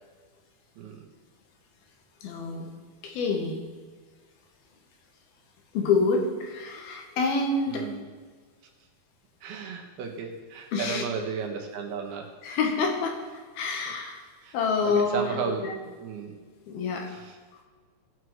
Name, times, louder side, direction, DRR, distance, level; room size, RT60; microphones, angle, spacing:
voice 1, 0.8-1.1 7.7-8.1 9.4-12.6 14.4-14.6 14.8-15.6 16.0-16.4 17.1-17.3, right 6 dB, 80° right, 2 dB, 3.4 m, -34 dB
voice 2, 2.2-2.7 3.0-3.6 5.7-7.9 10.7-11.0 12.4-14.2 14.5-15.7 16.7-17.1, left 4 dB, 75° left, 3 dB, 3.3 m, -27 dB
18.0 x 6.5 x 4.8 m, 1.5 s
omnidirectional pair, 4.4 m